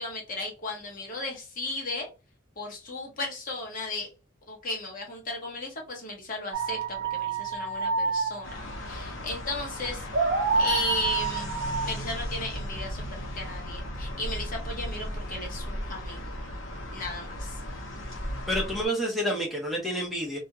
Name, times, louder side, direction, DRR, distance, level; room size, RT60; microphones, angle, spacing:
voice 1, 0.0-2.1 2.6-4.1 4.5-10.1 10.6-11.6 11.8-16.3 16.9-17.6, left 2 dB, 40° left, 0 dB, 0.8 m, -35 dB
sound 1, 6.5-13.1, right 4 dB, 60° right, 0.5 m, -29 dB
sound 2, 8.4-18.9, equal, 75° left, 0.8 m, -36 dB
voice 2, 18.5-20.4, equal, ahead, -3 dB, 0.6 m, -29 dB
2.3 x 2.1 x 2.7 m, 0.28 s
head